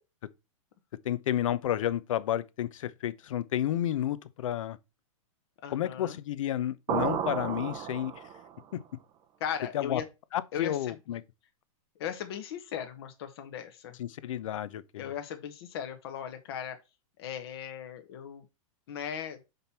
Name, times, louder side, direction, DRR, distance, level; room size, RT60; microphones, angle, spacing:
voice 1, 1.0-4.8 5.7-8.2 9.7-10.0 10.3-11.2 14.0-15.1, left 11 dB, 65° left, 0.8 m, -31 dB
voice 2, 5.6-6.2 9.4-10.1 10.5-11.0 12.0-14.0 15.0-16.8 17.2-18.4 18.9-19.4, left 9 dB, 45° left, 1.1 m, -37 dB
sound 1, 6.9-8.6, right 8 dB, 20° right, 0.6 m, -32 dB
6.0 x 5.2 x 4.2 m
supercardioid pair, 170°, 18 cm